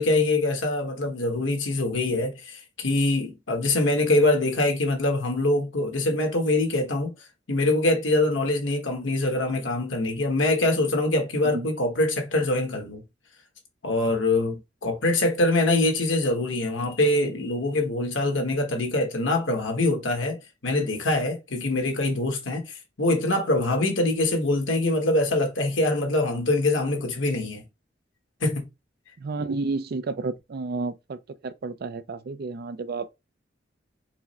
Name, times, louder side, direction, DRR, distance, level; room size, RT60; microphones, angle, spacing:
voice 1, 0.0-7.1 7.5-13.0 13.8-27.6 28.4-28.7, left 2 dB, 85° left, 1.3 m, -24 dB
voice 2, 29.2-31.2 31.4-33.1, right 3 dB, 55° right, 0.4 m, -31 dB
4.6 x 2.1 x 4.2 m
head